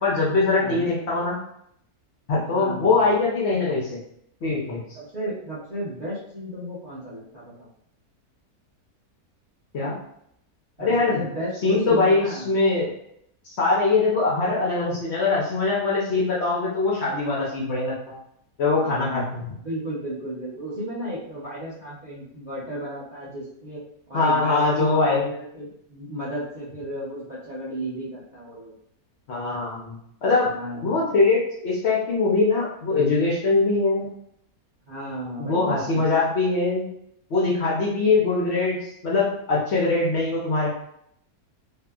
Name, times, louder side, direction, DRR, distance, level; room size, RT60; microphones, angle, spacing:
voice 1, 0.0-1.4 2.3-4.0 4.4-4.8 9.7-10.0 10.8-11.2 11.6-12.9 13.4-18.2 18.6-19.4 24.1-25.3 29.3-29.9 30.2-34.1 35.4-36.9 37.3-40.7, left 3 dB, 65° left, -5 dB, 0.7 m, -22 dB
voice 2, 2.5-3.1 4.9-7.7 10.8-12.5 18.8-28.7 30.5-31.2 34.9-36.1, equal, 45° right, -10 dB, 0.6 m, -34 dB
2.7 x 2.3 x 2.3 m, 0.72 s
omnidirectional pair, 1.6 m